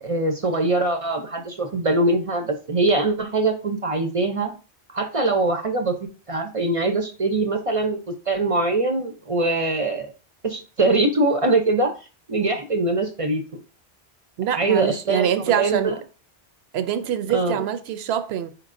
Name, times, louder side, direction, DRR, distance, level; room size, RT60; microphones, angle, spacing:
voice 1, 0.0-4.5 4.9-10.1 10.4-11.9 12.3-13.4 14.5-16.0 17.3-17.7, right 2 dB, 40° right, 0.5 m, -23 dB
voice 2, 14.4-15.9 16.7-18.5, right 9 dB, 75° right, 0.8 m, -24 dB
4.5 x 4.5 x 2.5 m
omnidirectional pair, 1.1 m